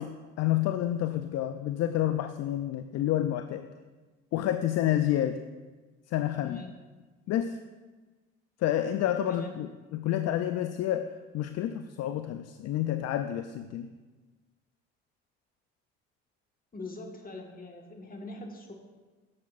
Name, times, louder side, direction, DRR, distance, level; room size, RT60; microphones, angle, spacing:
voice 1, 0.0-3.7 4.3-5.4 6.1-6.6 7.3-7.6 8.6-13.9, left 12 dB, 55° left, 10 dB, 0.4 m, -29 dB
voice 2, 6.4-6.7 9.3-9.6 16.7-18.7, left 2 dB, 30° left, 2 dB, 1.6 m, -42 dB
10.5 x 7.3 x 2.5 m, 1.3 s
hypercardioid pair, 55°, 30 cm